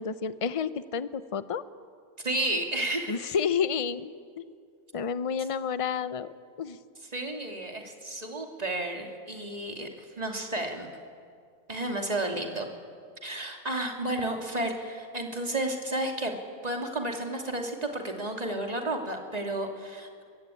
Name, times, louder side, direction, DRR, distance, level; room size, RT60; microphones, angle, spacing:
voice 1, 0.0-1.6 3.1-4.5 4.9-6.8, left 6 dB, 35° left, 14 dB, 0.6 m, -30 dB
voice 2, 2.2-3.1 7.1-10.9 11.7-12.7 13.2-16.4 16.6-20.2, right 1 dB, 25° right, 3 dB, 2.7 m, -32 dB
24.0 x 23.5 x 9.9 m, 2.2 s
omnidirectional pair, 1.5 m